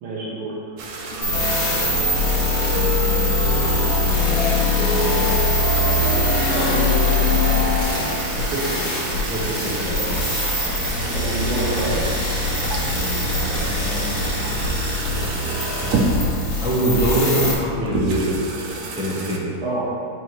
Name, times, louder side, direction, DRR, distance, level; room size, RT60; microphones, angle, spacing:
voice 1, 0.0-0.5 6.4-7.7 8.5-8.9 11.1-12.0 17.3-17.4 19.6-19.9, right 2 dB, 90° right, -6 dB, 1.9 m, -27 dB
sound 1, 0.8-19.4, right 3 dB, 65° right, 0.9 m, -30 dB
sound 2, 1.1-8.4, left 2 dB, 85° left, 1.8 m, -27 dB
sound 3, 1.2-17.5, left 2 dB, 45° left, 1.5 m, -22 dB
voice 2, 9.2-10.2 12.7-14.6 16.6-18.4 19.0-19.6, right 1 dB, 5° right, -7 dB, 0.5 m, -25 dB
9.2 x 4.5 x 3.1 m, 2.5 s
omnidirectional pair, 2.3 m